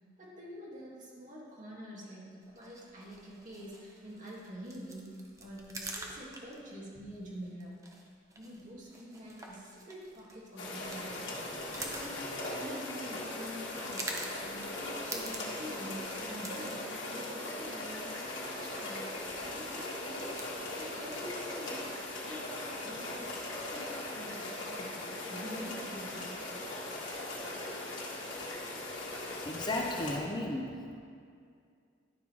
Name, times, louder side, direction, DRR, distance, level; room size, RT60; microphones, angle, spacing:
voice 1, 0.2-7.7 8.4-20.4 20.7-26.4, equal, 45° right, -5 dB, 2.2 m, -46 dB
sound 1, 2.4-21.6, right 2 dB, 15° right, 0.9 m, -48 dB
sound 2, 10.6-30.2, left 2 dB, 70° left, 1.7 m, -39 dB
voice 2, 29.4-31.0, left 1 dB, 25° left, 1 dB, 0.7 m, -35 dB
11.5 x 5.7 x 4.7 m, 2.2 s
head